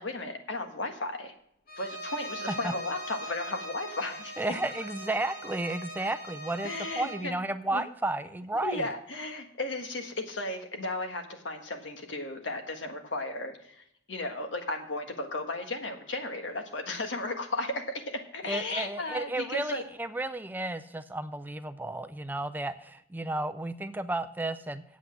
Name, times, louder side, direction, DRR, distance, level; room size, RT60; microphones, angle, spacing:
voice 1, 0.0-1.3 1.8-4.6 6.6-7.4 7.7-7.8 8.6-19.8, left 2 dB, 80° left, 5 dB, 1.6 m, -35 dB
Bowed string instrument, 1.7-7.3, right 1 dB, 50° left, 2.0 m, -41 dB
voice 2, 4.4-8.8 18.5-24.8, right 2 dB, 10° right, 11 dB, 0.4 m, -33 dB
8.3 x 8.0 x 7.6 m, 0.69 s
head